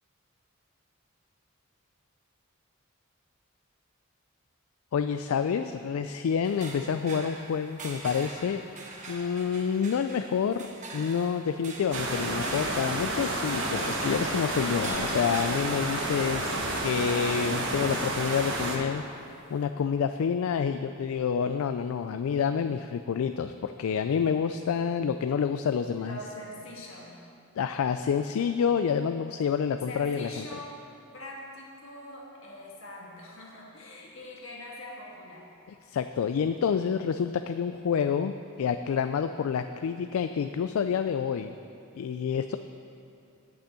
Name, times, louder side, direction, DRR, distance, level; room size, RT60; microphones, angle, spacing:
voice 1, 4.9-8.6 9.1-10.7 10.9-19.0 19.5-26.2 27.6-30.5 35.9-38.3 38.6-41.5 41.9-42.6, left 7 dB, 75° left, 9 dB, 0.3 m, -28 dB
sound 1, 6.4-19.7, right 3 dB, 35° right, 1.1 m, -44 dB
sound 2, 11.9-18.8, right 1 dB, 60° right, 1.3 m, -30 dB
voice 2, 26.0-27.1 29.9-30.8 31.1-35.5, left 1 dB, 60° left, -3 dB, 1.9 m, -43 dB
8.7 x 6.3 x 8.2 m, 2.6 s
head